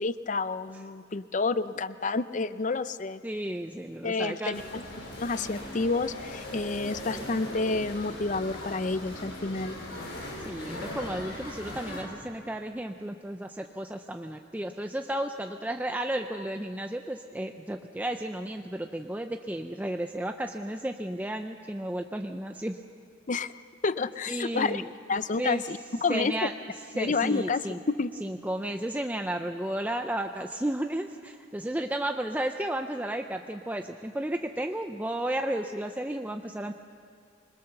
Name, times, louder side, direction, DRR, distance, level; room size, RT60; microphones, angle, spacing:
voice 1, 0.0-3.2 4.0-4.8 5.2-9.8 23.3-23.5 23.8-24.8 25.1-26.5 26.9-28.1, left 3 dB, 40° left, 14 dB, 0.6 m, -29 dB
voice 2, 3.2-4.6 10.5-22.8 24.3-24.9 25.4-25.6 26.1-26.5 27.0-27.8 28.2-36.7, right 1 dB, 10° right, 5 dB, 0.5 m, -33 dB
sound 1, 4.5-12.0, left 1 dB, 85° left, 5.6 m, -39 dB
26.0 x 21.0 x 6.8 m, 2.3 s
head